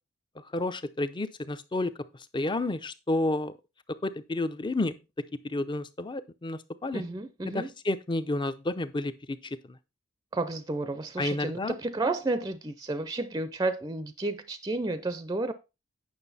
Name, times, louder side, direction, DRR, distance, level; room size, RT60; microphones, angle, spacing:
voice 1, 0.5-1.9 2.3-3.5 4.0-5.0 5.4-7.0 7.4-9.4 11.2-11.7, left 2 dB, 25° left, 0.6 m, -30 dB
voice 2, 6.9-7.7 10.3-15.5, right 2 dB, 20° right, 0.5 m, -31 dB
9.1 x 6.1 x 4.1 m
head